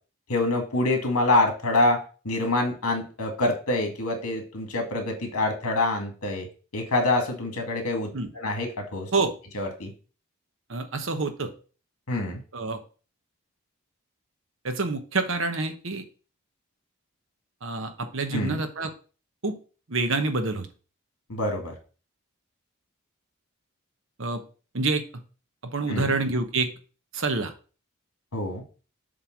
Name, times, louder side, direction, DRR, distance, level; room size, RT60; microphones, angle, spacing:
voice 1, 0.3-6.5 6.7-8.1 8.3-9.1 9.5-9.9 12.1-12.4 18.3-18.6 21.3-21.7 25.9-26.2 28.3-28.6, left 2 dB, 85° left, 3 dB, 2.0 m, -26 dB
voice 2, 10.7-11.5 12.5-12.8 14.6-16.0 17.6-18.9 19.4-19.5 19.9-20.7 24.2-24.4 24.7-25.0 25.6-26.7 27.1-27.5, right 3 dB, 60° right, 7 dB, 1.0 m, -27 dB
7.4 x 3.4 x 5.8 m, 0.36 s
head